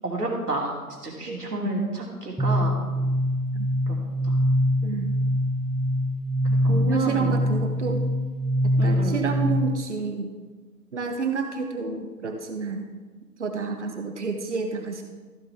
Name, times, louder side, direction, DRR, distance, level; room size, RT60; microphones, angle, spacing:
voice 1, 0.0-0.7 1.0-2.8 3.9-4.0 4.2-4.4 6.6-7.4 8.8-9.2, right 2 dB, 70° right, -1 dB, 3.2 m, -30 dB
voice 2, 1.3-1.7 3.5-3.7 4.8-5.1 6.7-8.0 8.8-10.3 10.9-12.9 13.4-15.0, right 5 dB, 45° right, 5 dB, 1.2 m, -29 dB
sound 1, 2.4-9.9, equal, ahead, 0.4 m, -24 dB
15.0 x 8.0 x 3.5 m, 1.3 s
figure-of-eight pair, 135°, 48 cm